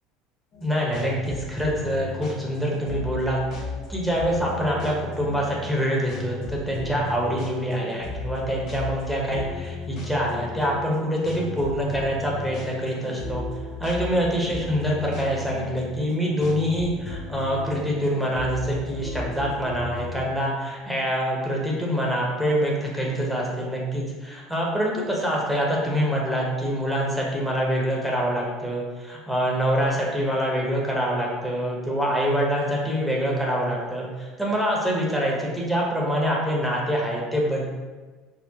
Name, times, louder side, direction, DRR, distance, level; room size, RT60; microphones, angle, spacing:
sound 1, 0.5-20.2, left 3 dB, 60° left, 0.9 m, -36 dB
voice 1, 0.6-3.4 3.9-13.4 13.8-34.1 34.4-37.6, equal, ahead, -3 dB, 1.0 m, -25 dB
4.4 x 2.0 x 3.5 m, 1.3 s
supercardioid pair, 90°, 0 cm